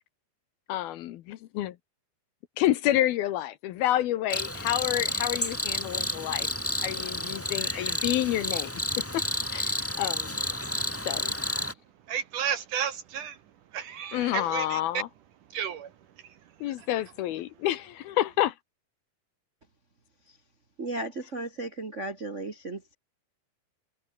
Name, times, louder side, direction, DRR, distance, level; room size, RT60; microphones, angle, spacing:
voice 1, 0.7-1.8 2.6-6.5 6.8-8.7 9.1-9.2 9.5-10.4 11.1-11.3 14.1-15.1 16.6-18.5, left 13 dB, 70° left, 2.7 m, -29 dB
Cricket, 4.3-11.7, left 1 dB, 10° left, 0.6 m, -30 dB
voice 2, 12.1-13.4 13.7-15.0 15.5-16.4 16.7-16.9, right 8 dB, 65° right, 2.3 m, -33 dB
voice 3, 20.8-22.9, right 2 dB, 85° right, 0.6 m, -35 dB
omnidirectional pair, 4.9 m